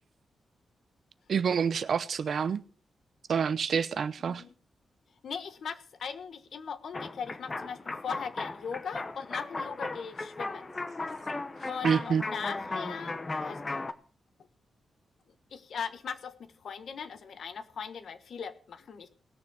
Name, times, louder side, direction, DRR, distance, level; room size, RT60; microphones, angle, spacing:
voice 1, 1.3-2.6 3.3-4.4 11.8-12.2, right 6 dB, 55° right, 0.7 m, -27 dB
voice 2, 4.2-4.5 5.2-10.7 11.7-13.7 15.5-19.1, left 6 dB, 65° left, 1.2 m, -39 dB
sound 1, 6.9-13.9, left 3 dB, 25° left, 0.8 m, -36 dB
19.0 x 7.0 x 4.8 m
wide cardioid pair, 140°, 0 cm